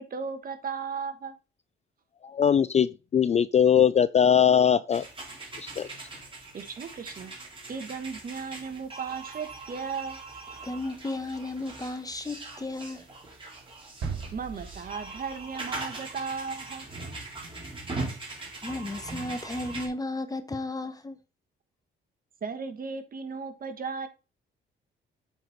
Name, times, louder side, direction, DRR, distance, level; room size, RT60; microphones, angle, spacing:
voice 1, 0.0-1.4 6.5-7.3 7.7-10.2 14.3-16.8 22.4-24.1, right 5 dB, 45° right, 1.4 m, -36 dB
voice 2, 2.2-5.1 5.6-5.9, left 8 dB, 35° left, 0.4 m, -21 dB
sound 1, 4.9-19.9, right 3 dB, 25° right, 3.4 m, -41 dB
voice 3, 10.6-13.1 18.6-21.2, left 2 dB, 20° left, 1.1 m, -34 dB
sound 2, 14.0-16.5, right 5 dB, 75° right, 3.0 m, -39 dB
8.0 x 4.4 x 4.0 m
cardioid pair, 90°, 20 cm